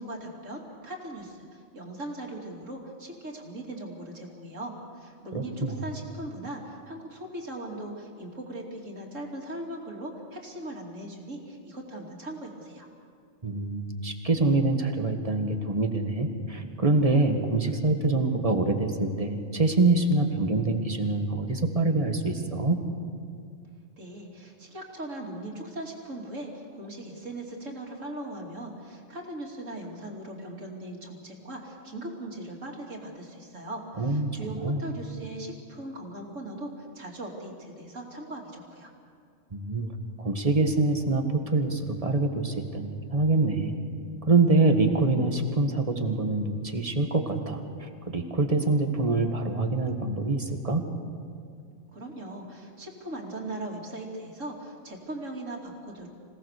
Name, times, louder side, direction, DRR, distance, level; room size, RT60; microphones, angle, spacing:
voice 1, 0.0-12.9 24.0-38.9 51.9-56.1, right 1 dB, 85° right, 0 dB, 3.3 m, -39 dB
voice 2, 5.3-5.8 13.4-22.8 34.0-34.3 34.5-34.8 39.5-39.9 40.2-43.7 44.3-50.8, right 2 dB, 30° right, 4 dB, 1.8 m, -25 dB
26.5 x 18.0 x 6.7 m, 2.2 s
omnidirectional pair, 1.3 m